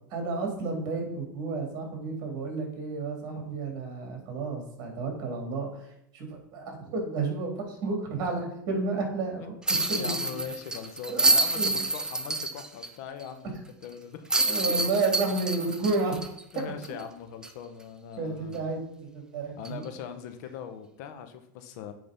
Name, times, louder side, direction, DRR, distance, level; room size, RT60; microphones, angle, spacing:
voice 1, 0.1-5.8 6.1-9.6 9.9-10.3 11.1-11.8 14.5-16.2 18.2-19.8, right 3 dB, 45° right, 2 dB, 3.2 m, -31 dB
sound 1, 9.7-12.9 13.2-13.3 14.3-17.0 17.4-17.5 19.6-19.8, right 2 dB, 5° right, 0.6 m, -27 dB
voice 2, 9.9-14.3 14.6-14.8 16.5-18.7 19.6-21.9, left 8 dB, 60° left, 8 dB, 1.1 m, -41 dB
8.9 x 3.9 x 5.3 m, 0.78 s
supercardioid pair, 125°, 10 cm